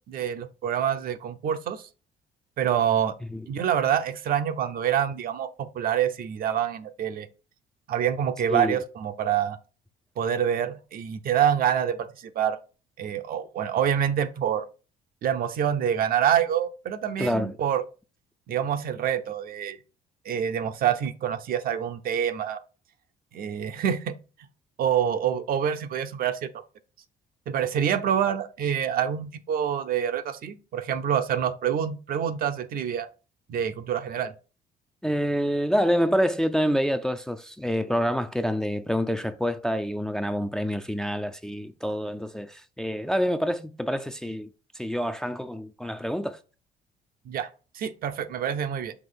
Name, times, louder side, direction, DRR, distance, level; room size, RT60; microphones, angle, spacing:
voice 1, 0.0-1.9 2.6-3.1 3.5-7.3 7.9-9.6 10.2-12.6 13.0-14.7 15.2-17.8 18.5-19.8 20.2-22.6 23.3-24.1 24.8-26.5 27.5-33.1 33.5-34.3 47.3-47.5 47.7-48.9, right 9 dB, 60° right, 0.7 m, -26 dB
voice 2, 17.2-17.6 35.0-44.5 44.7-46.4, equal, 5° left, 0.4 m, -27 dB
6.0 x 3.0 x 5.5 m
cardioid pair, 110°, 17 cm